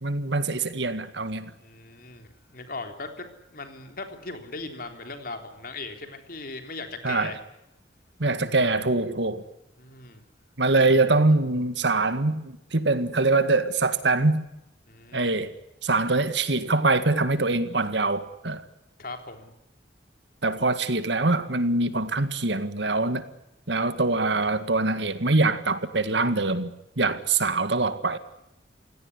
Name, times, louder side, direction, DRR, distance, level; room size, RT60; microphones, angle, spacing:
voice 1, 0.0-1.5 7.0-7.3 8.2-9.4 10.6-14.4 15.1-15.5 15.8-18.6 20.4-23.2 23.7-26.7 27.0-28.2, right 3 dB, 70° right, 1.9 m, -24 dB
voice 2, 1.6-7.4 9.8-10.2 14.9-15.3 19.0-19.5, left 3 dB, 50° left, 3.6 m, -39 dB
29.0 x 17.0 x 9.7 m
head